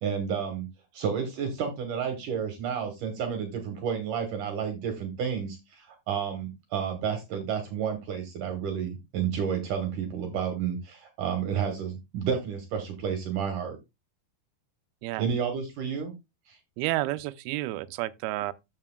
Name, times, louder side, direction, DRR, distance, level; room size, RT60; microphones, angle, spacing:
voice 1, 0.0-0.7 0.9-13.8 15.2-16.1 16.5-16.6, right 7 dB, 65° right, 2.4 m, -31 dB
voice 2, 16.8-18.5, right 17 dB, 85° right, 2.4 m, -30 dB
13.0 x 5.9 x 2.2 m
omnidirectional pair, 4.4 m